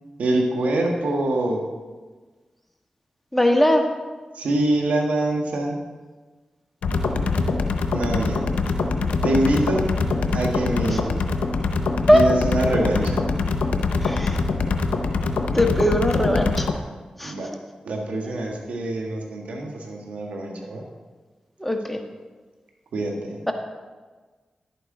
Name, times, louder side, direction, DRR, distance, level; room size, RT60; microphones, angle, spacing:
voice 1, 0.2-1.7 4.3-5.8 7.9-8.4 9.2-9.9 10.3-11.1 12.1-13.2 17.2-17.5 17.8-20.8 22.9-23.4, right 1 dB, 85° right, 1 dB, 1.5 m, -24 dB
voice 2, 3.3-3.8 10.9-11.0 12.1-12.2 14.0-14.4 15.5-16.7 17.2-17.3 21.6-22.0 23.5-23.6, equal, 5° left, 3 dB, 1.5 m, -19 dB
sound 1, 6.8-16.7, left 3 dB, 90° left, 0.7 m, -23 dB
11.0 x 9.0 x 3.8 m, 1.3 s
cardioid pair, 45°, 2 cm